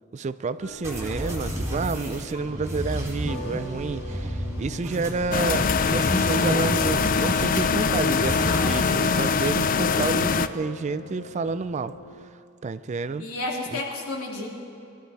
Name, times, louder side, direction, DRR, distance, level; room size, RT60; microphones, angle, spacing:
voice 1, 0.1-11.9 12.6-13.3 13.7-13.8, right 4 dB, 35° right, 14 dB, 0.3 m, -29 dB
sound 1, 0.6-12.3, left 1 dB, 75° left, 1.2 m, -40 dB
sound 2, 0.8-8.8, equal, 15° right, 1.8 m, -32 dB
sound 3, 5.3-10.5, left 5 dB, 40° left, 0.4 m, -23 dB
voice 2, 13.2-14.5, left 2 dB, 90° left, -2 dB, 2.5 m, -31 dB
22.0 x 12.5 x 4.2 m, 2.7 s
head